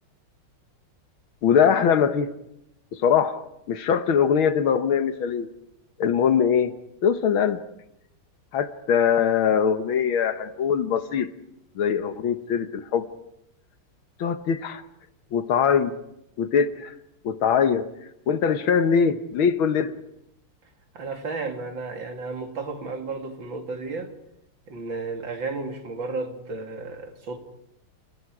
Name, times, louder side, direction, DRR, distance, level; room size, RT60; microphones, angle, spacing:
voice 1, 1.4-2.3 2.9-3.4 3.7-5.5 6.0-7.6 8.5-11.3 11.8-13.1 14.2-14.8 15.3-16.0 16.4-16.9 17.2-17.9 18.3-19.9, left 7 dB, 70° left, 1.9 m, -22 dB
voice 2, 20.9-24.1 24.7-27.4, right 3 dB, 60° right, 3.1 m, -33 dB
30.0 x 29.0 x 4.9 m
omnidirectional pair, 2.3 m